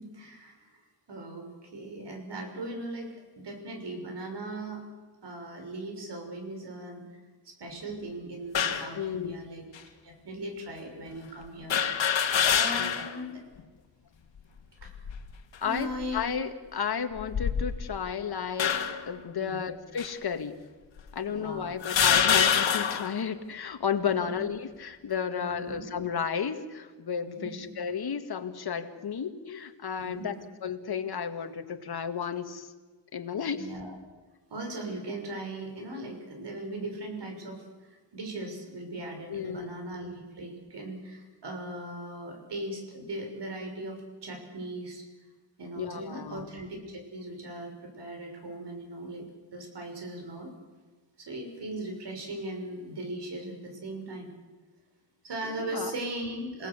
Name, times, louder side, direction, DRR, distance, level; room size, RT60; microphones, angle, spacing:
voice 1, 0.0-4.8 5.2-7.0 7.4-11.7 12.0-12.1 12.5-13.4 14.7-15.0 15.6-16.3 19.4-19.6 21.3-21.8 24.1-24.4 25.4-25.8 27.3-27.7 30.0-30.3 33.5-33.9 34.5-45.1 45.6-49.3 49.5-50.5 51.2-54.3 55.2-56.7, right 1 dB, 65° right, 4 dB, 6.2 m, -39 dB
sound 1, 8.5-8.9 9.8-9.9 11.7-13.2 13.6-13.7 14.8-15.3 16.0-16.2 17.2-18.0 18.6-19.1 20.0-20.1 21.0-21.1 21.8-23.2, left 8 dB, 80° left, 2.1 m, -25 dB
voice 2, 8.9-9.4 12.8-13.2 15.6-18.7 19.1-20.5 21.1-30.3 30.6-32.7 33.1-33.7 39.3-39.7 45.8-46.5 55.6-55.9, left 7 dB, 55° left, 7 dB, 2.0 m, -33 dB
28.0 x 18.0 x 8.4 m, 1.3 s
wide cardioid pair, 130°, 44 cm